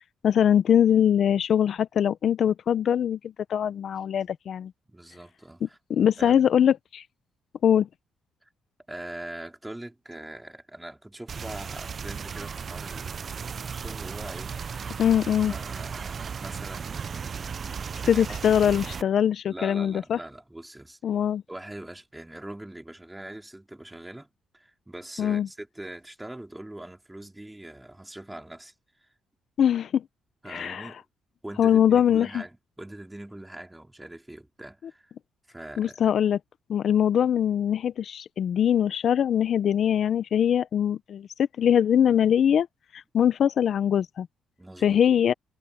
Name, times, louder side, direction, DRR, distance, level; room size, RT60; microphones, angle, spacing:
voice 1, 0.2-3.2 3.5-4.7 5.6-7.0 7.6-7.9 15.0-15.5 18.1-20.2 21.0-21.4 25.2-25.5 29.6-30.0 30.5-30.9 31.6-32.4 35.8-36.4 36.7-41.3 41.6-42.7 42.9-44.3 44.8-45.3, left 9 dB, 60° left, 0.7 m, -22 dB
voice 2, 4.9-5.8 6.2-6.4 8.4-8.5 8.9-13.3 13.7-14.6 15.5-18.3 18.6-18.8 19.5-21.0 21.5-28.7 30.4-31.0 31.4-35.1 35.5-36.2 44.6-45.0, right 1 dB, 10° right, 4.7 m, -42 dB
sound 1, 11.3-19.0, right 6 dB, 45° right, 0.7 m, -35 dB
cardioid pair, 90°, 0 cm